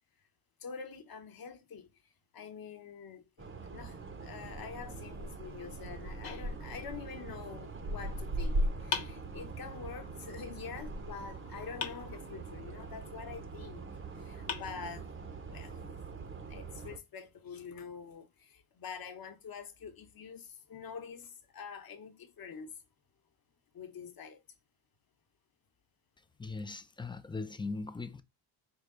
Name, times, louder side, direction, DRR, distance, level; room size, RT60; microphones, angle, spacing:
voice 1, 0.6-1.9 2.3-3.2 3.6-13.9 14.1-15.1 15.5-15.8 16.5-22.7 23.7-24.4, left 6 dB, 50° left, 1.0 m, -46 dB
sound 1, 3.4-17.0, right 2 dB, 25° right, 0.7 m, -40 dB
sound 2, 6.2-7.2 8.9-9.9 11.8-12.7 13.9-14.0 14.5-15.4, left 7 dB, 70° left, 1.0 m, -42 dB
voice 2, 26.4-28.2, left 3 dB, 10° left, 0.3 m, -39 dB
4.7 x 2.3 x 3.8 m
cardioid pair, 100°, 47 cm